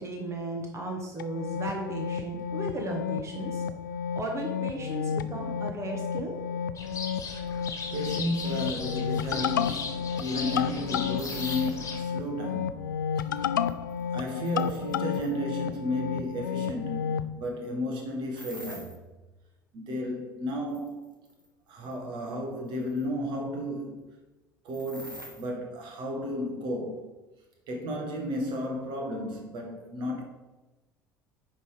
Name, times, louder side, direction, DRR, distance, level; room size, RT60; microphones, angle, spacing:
voice 1, 0.0-3.6 4.1-6.4, right 2 dB, 25° right, 1.4 m, -35 dB
sound 1, 1.2-17.3, left 7 dB, 75° left, 0.4 m, -32 dB
sound 2, 6.7-12.0, left 4 dB, 30° left, 1.7 m, -38 dB
voice 2, 7.9-13.4 14.1-18.9 19.7-21.1 21.7-24.1 24.6-27.0 27.7-30.2, left 1 dB, 50° right, 1.7 m, -33 dB
sound 3, 11.2-11.7 13.7-15.4 18.4-19.0 20.7-21.5 21.9-22.0 22.8-23.0 24.7-25.5, right 1 dB, 90° right, 0.9 m, -45 dB
10.0 x 3.8 x 4.9 m
figure-of-eight pair, 65°, 11 cm